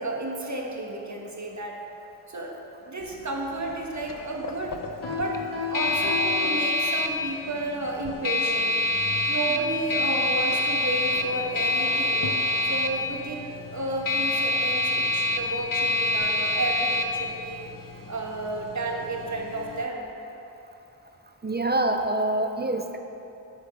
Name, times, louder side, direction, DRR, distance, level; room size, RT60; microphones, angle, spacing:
voice 1, 0.0-1.8 2.3-4.7 5.1-5.4 5.7-12.3 12.6-20.1, right 2 dB, 40° right, 0 dB, 1.6 m, -32 dB
sound 1, 3.0-19.8, left 1 dB, 50° left, 0.8 m, -27 dB
Piano, 5.0-7.3, left 7 dB, 75° left, 1.7 m, -34 dB
voice 2, 21.4-23.0, right 2 dB, 25° right, 6 dB, 0.6 m, -25 dB
9.7 x 5.2 x 6.2 m, 2.9 s
cardioid pair, 50°, 41 cm